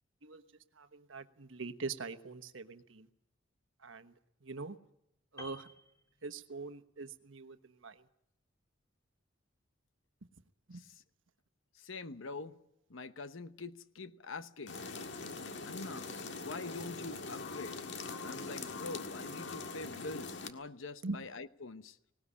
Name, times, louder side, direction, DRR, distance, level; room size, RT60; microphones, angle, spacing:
voice 1, 0.7-3.1 3.8-4.1 4.4-4.8 5.3-5.7 6.2-8.1 10.7-10.8 21.0-21.2, right 3 dB, 75° right, 1.2 m, -43 dB
Piano, 5.4-6.8 7.1-7.3, left 1 dB, 15° left, 3.1 m, -54 dB
voice 2, 11.7-12.6 12.9-14.8 15.6-16.1 16.4-17.8 18.2-22.0, left 3 dB, 75° left, 1.0 m, -45 dB
sound 1, 14.7-20.5, left 4 dB, 60° left, 1.8 m, -42 dB
19.5 x 19.0 x 8.5 m
head